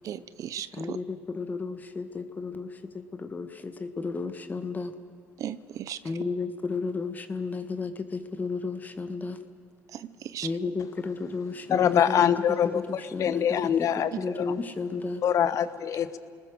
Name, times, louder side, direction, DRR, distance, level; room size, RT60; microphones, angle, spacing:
voice 1, 0.0-1.0 5.4-6.0 9.9-10.5, right 10 dB, 55° right, 15 dB, 0.8 m, -36 dB
voice 2, 0.7-4.9 6.0-9.4 10.4-12.3 12.6-15.2, left 4 dB, 25° left, 8 dB, 1.6 m, -33 dB
voice 3, 11.7-14.5 15.2-16.2, left 9 dB, 55° left, 13 dB, 1.2 m, -24 dB
29.5 x 20.0 x 6.5 m, 2.1 s
supercardioid pair, 75°, 7 cm